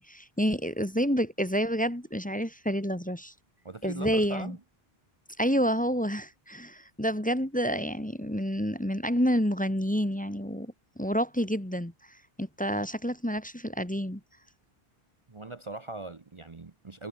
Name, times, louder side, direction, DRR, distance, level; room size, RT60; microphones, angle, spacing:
voice 1, 0.0-3.3 3.8-4.6 5.4-14.2, equal, 10° left, 1.4 m, -29 dB
voice 2, 3.6-4.6 15.3-17.1, right 3 dB, 30° right, 1.0 m, -41 dB
omnidirectional pair, 1.1 m